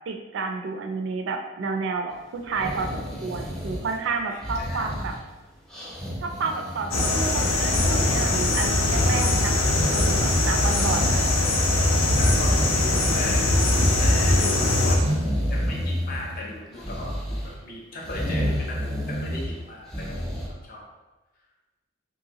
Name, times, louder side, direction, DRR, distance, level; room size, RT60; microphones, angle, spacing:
voice 1, 0.1-5.1 6.2-11.2, right 4 dB, 65° right, 4 dB, 0.3 m, -30 dB
sound 1, 2.4-4.1 4.4-5.3 5.7-7.3 7.6-8.3 8.8-10.3 10.7-11.5 11.9-13.4 13.7-14.4 14.9-16.4 16.8-17.5 18.0-19.5 19.9-20.5, equal, ahead, 0.4 m, -30 dB
voice 2, 4.3-4.8 11.7-13.5 14.0-20.4 20.6-20.8, left 2 dB, 45° left, -3 dB, 0.6 m, -38 dB
sound 2, 6.9-15.0, left 2 dB, 90° left, 0.5 m, -21 dB
2.8 x 2.5 x 2.8 m, 1.1 s
head